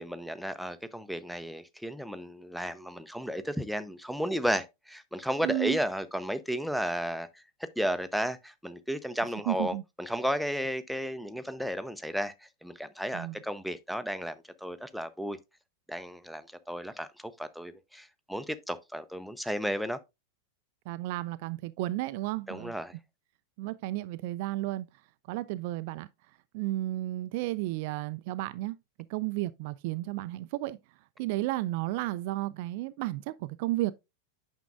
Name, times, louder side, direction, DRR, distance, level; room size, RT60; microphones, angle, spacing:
voice 1, 0.0-7.4 7.8-12.3 12.6-15.4 15.9-17.1 17.4-20.0 22.5-22.9, equal, ahead, 0.6 m, -33 dB
voice 2, 5.4-5.8 9.5-9.8 13.1-13.4 20.9-22.7 23.6-24.9 25.3-26.1 26.5-28.8 29.1-30.8 31.2-33.9, right 17 dB, 50° right, 0.3 m, -32 dB
9.0 x 6.1 x 2.4 m
figure-of-eight pair, 90°, 0 cm